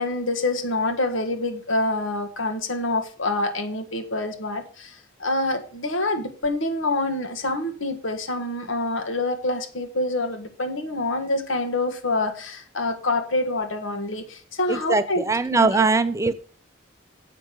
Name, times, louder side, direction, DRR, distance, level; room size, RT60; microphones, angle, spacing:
voice 1, 0.0-15.2 15.5-15.9, left 2 dB, 80° left, 6 dB, 1.5 m, -26 dB
voice 2, 14.7-16.3, right 3 dB, 15° right, 11 dB, 0.5 m, -21 dB
7.6 x 6.0 x 6.6 m, 0.42 s
head